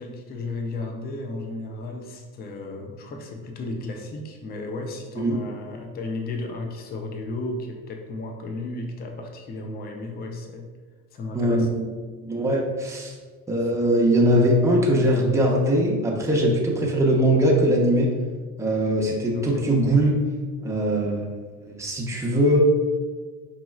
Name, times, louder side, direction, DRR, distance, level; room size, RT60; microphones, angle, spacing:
voice 1, 0.0-10.7 11.1-11.7 19.3-19.7, left 2 dB, 20° left, 3 dB, 0.5 m, -34 dB
voice 2, 11.3-11.7 12.2-13.2 13.5-18.1 18.6-20.1 20.6-21.3 21.6-22.6, right 1 dB, 5° right, -2 dB, 0.8 m, -21 dB
5.3 x 2.9 x 2.3 m, 1.4 s
hypercardioid pair, 75°, 45 cm